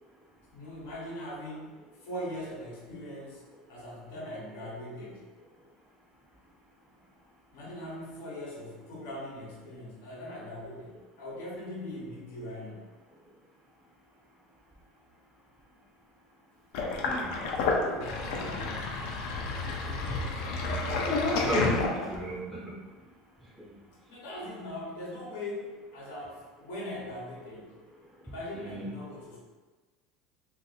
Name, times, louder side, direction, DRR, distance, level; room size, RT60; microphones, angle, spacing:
voice 1, 0.5-3.4 3.7-5.3 7.5-12.9 17.3-19.0 24.1-27.7 28.2-29.4, left 1 dB, 85° left, -3 dB, 1.0 m, -41 dB
Sink (filling or washing), 16.7-22.3, left 3 dB, 70° left, 0.5 m, -30 dB
voice 2, 17.0-17.4 21.3-22.8 23.6-23.7 28.7-28.9, right 1 dB, 5° right, -5 dB, 0.5 m, -34 dB
2.5 x 2.5 x 3.9 m, 1.3 s
supercardioid pair, 140°, 0 cm